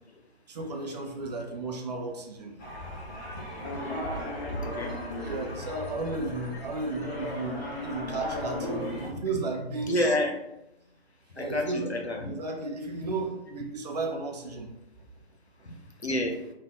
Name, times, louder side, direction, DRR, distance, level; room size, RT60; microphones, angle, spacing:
voice 1, 0.5-2.6 5.2-10.2 11.3-11.9 12.3-14.7, right 3 dB, 40° right, 1 dB, 0.7 m, -34 dB
sound 1, 2.6-9.1, left 1 dB, 15° left, 0.6 m, -35 dB
voice 2, 4.6-4.9 9.1-9.2 9.9-10.3 11.3-12.3 15.6-15.8 16.0-16.4, left 1 dB, 90° left, 3 dB, 0.8 m, -28 dB
3.6 x 2.4 x 3.6 m, 0.88 s
figure-of-eight pair, 130°, 32 cm